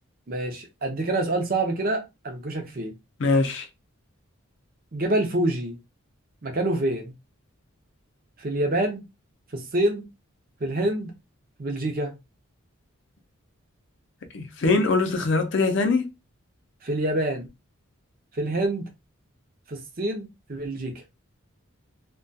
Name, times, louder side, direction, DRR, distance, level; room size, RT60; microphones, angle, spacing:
voice 1, 0.3-2.9 4.9-5.8 6.4-7.1 8.4-9.0 9.5-10.1 10.6-11.1 11.6-12.2 16.8-17.5 18.3-18.8 19.7-21.0, right 1 dB, 40° right, 0.6 m, -26 dB
voice 2, 3.2-3.7 14.3-16.1, left 3 dB, 55° left, 0.5 m, -22 dB
2.3 x 2.2 x 2.6 m
head